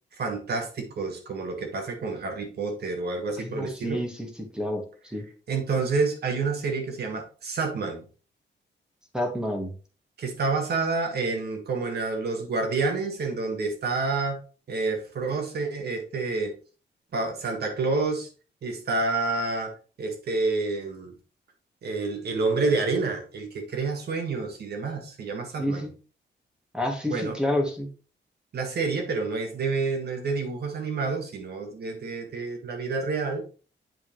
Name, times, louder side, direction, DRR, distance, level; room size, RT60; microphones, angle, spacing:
voice 1, 0.2-4.0 5.5-8.0 10.2-14.4 14.7-16.6 17.1-18.3 18.6-19.7 20.0-21.1 21.8-25.9 27.1-27.4 28.5-33.4, right 3 dB, 60° right, 3 dB, 1.7 m, -28 dB
voice 2, 3.4-5.2 9.1-9.7 25.6-25.9 26.7-27.9, left 1 dB, 5° right, 2 dB, 1.4 m, -29 dB
7.9 x 5.5 x 3.1 m, 0.36 s
wide cardioid pair, 170°, 19 cm